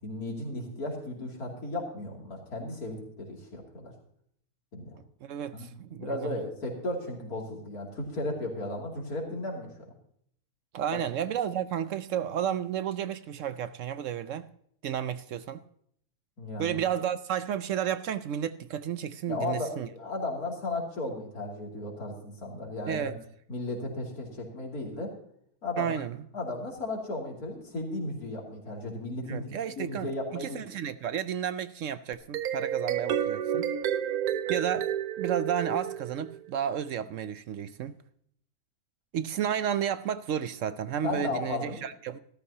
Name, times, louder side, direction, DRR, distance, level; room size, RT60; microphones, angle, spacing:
voice 1, 0.0-3.9 4.7-5.0 5.5-9.7 10.9-11.0 16.4-16.8 19.3-23.2 23.5-25.1 25.6-26.0 26.3-29.5 29.8-30.6 41.0-41.8, left 2 dB, 80° left, 3.2 m, -35 dB
voice 2, 5.2-6.4 10.7-14.5 14.8-15.6 16.6-19.9 22.9-23.2 25.8-26.2 29.3-33.7 34.5-34.9 35.2-38.0 39.1-42.2, right 9 dB, 70° right, 0.8 m, -32 dB
sound 1, 32.1-36.5, right 9 dB, 85° right, 1.2 m, -30 dB
14.0 x 13.5 x 2.8 m
omnidirectional pair, 1.6 m